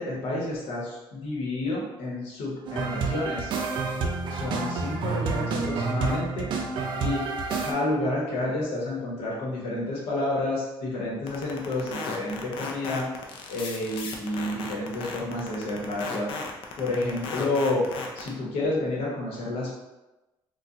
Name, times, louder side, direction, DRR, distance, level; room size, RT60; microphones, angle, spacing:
voice 1, 0.0-3.6 4.3-6.5 7.0-13.1 13.5-16.3 16.8-17.9 18.1-19.7, left 2 dB, 85° left, -4 dB, 1.1 m, -30 dB
sound 1, 2.7-7.7, right 4 dB, 55° right, 0.5 m, -29 dB
sound 2, 11.3-18.3, left 5 dB, 65° left, 0.5 m, -35 dB
4.1 x 2.3 x 2.5 m, 1.0 s
cardioid pair, 135°, 10 cm